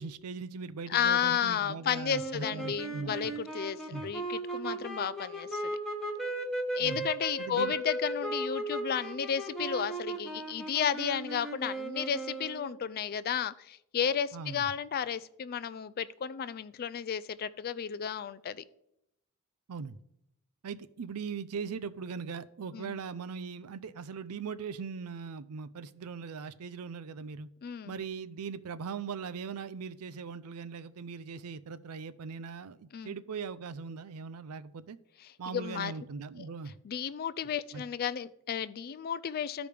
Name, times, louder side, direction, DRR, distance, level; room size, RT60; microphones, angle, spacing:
voice 1, 0.0-3.2 3.9-4.1 6.8-7.1 7.4-7.8 14.3-14.7 19.7-20.0 20.6-27.5 27.9-35.0 35.4-36.7 37.7-37.8, right 5 dB, 80° right, 14 dB, 0.5 m, -40 dB
voice 2, 0.9-5.8 6.7-18.6 22.7-23.0 27.6-27.9 32.9-33.1 35.5-35.9 36.8-39.7, left 8 dB, 45° left, 15 dB, 0.3 m, -33 dB
sound 1, 2.1-12.8, right 2 dB, ahead, 1.0 m, -37 dB
14.0 x 5.0 x 3.4 m, 0.79 s
head